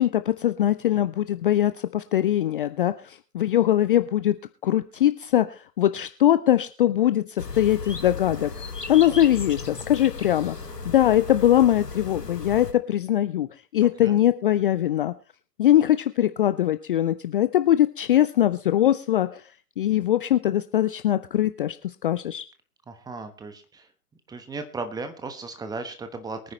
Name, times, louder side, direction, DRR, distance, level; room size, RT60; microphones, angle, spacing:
voice 1, 0.0-4.4 4.6-8.5 8.9-13.5 13.7-15.1 15.6-19.5 19.8-22.4, left 12 dB, 35° left, 12 dB, 0.5 m, -22 dB
sound 1, 7.4-12.7, left 4 dB, 90° left, 1.6 m, -35 dB
voice 2, 22.9-23.9 24.3-26.5, right 3 dB, 10° right, 8 dB, 1.3 m, -36 dB
23.0 x 9.6 x 3.2 m, 0.37 s
figure-of-eight pair, 115°, 47 cm